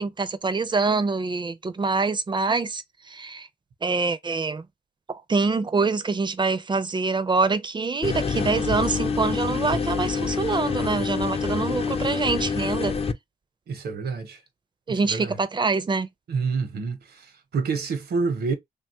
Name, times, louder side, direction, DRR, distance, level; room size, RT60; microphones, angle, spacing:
voice 1, 0.0-2.8 3.1-3.5 3.8-4.6 5.1-12.9 14.9-16.1, right 4 dB, 30° right, 0.5 m, -25 dB
sound 1, 8.0-13.1, left 5 dB, 35° left, 0.5 m, -26 dB
voice 2, 13.7-14.4 14.9-15.4 16.3-18.5, right 4 dB, 75° right, 0.8 m, -28 dB
2.9 x 2.3 x 2.7 m
cardioid pair, 70°, 17 cm